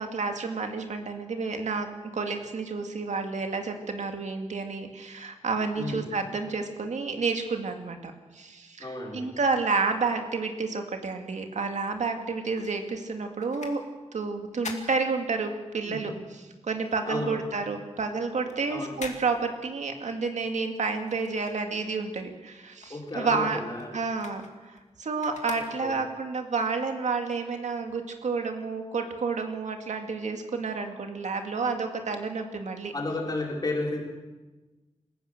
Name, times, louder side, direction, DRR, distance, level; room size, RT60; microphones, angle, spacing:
voice 1, 0.0-13.8 14.1-16.1 16.6-23.6 23.9-32.9, right 4 dB, 85° right, 4 dB, 2.2 m, -30 dB
voice 2, 5.8-6.1 8.8-9.3 15.9-16.0 17.1-17.4 18.7-18.9 22.9-23.9 25.8-26.0 32.9-34.0, left 2 dB, 35° left, -2 dB, 5.2 m, -32 dB
sound 1, 12.2-15.8 16.2-22.1 22.5-26.2 26.8-26.9, left 4 dB, 80° left, 2.5 m, -46 dB
27.0 x 15.5 x 6.6 m, 1.2 s
wide cardioid pair, 120°, 12 cm